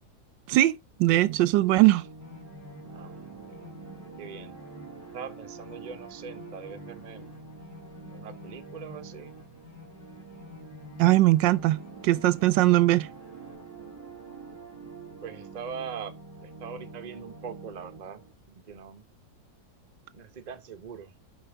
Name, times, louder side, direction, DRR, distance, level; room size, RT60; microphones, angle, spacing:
voice 1, 0.5-2.0 11.0-11.8 12.0-13.1, right 17 dB, 80° right, 1.2 m, -20 dB
sound 1, 1.0-18.3, right 4 dB, 10° right, 3.0 m, -46 dB
sound 2, 2.2-13.5, left 5 dB, 55° left, 3.5 m, -51 dB
voice 2, 2.9-3.2 3.5-3.6 4.2-4.6 5.1-7.3 8.1-9.4 15.2-19.0 20.1-21.1, right 6 dB, 35° right, 0.7 m, -42 dB
7.8 x 5.2 x 3.4 m
omnidirectional pair, 2.0 m